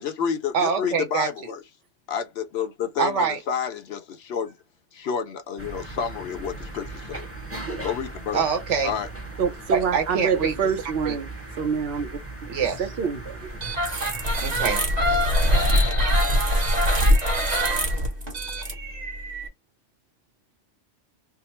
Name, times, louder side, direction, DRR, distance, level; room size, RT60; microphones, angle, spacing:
voice 1, 0.0-1.6 2.1-4.6 4.9-7.3 7.8-8.4 8.8-9.1, left 7 dB, 65° left, 0.9 m, -29 dB
voice 2, 0.5-1.3 3.0-3.4 8.3-8.9 9.7-10.5 11.0-11.2 12.5-12.8 14.4-15.3 16.6-16.7, right 6 dB, 75° right, 1.3 m, -25 dB
sound 1, 5.6-14.9, right 2 dB, 15° right, 0.8 m, -38 dB
voice 3, 9.4-11.3 11.6-12.2 12.8-13.6, right 6 dB, 60° right, 0.9 m, -26 dB
sound 2, 13.6-19.5, equal, 35° right, 1.3 m, -22 dB
3.6 x 2.0 x 4.2 m
omnidirectional pair, 1.2 m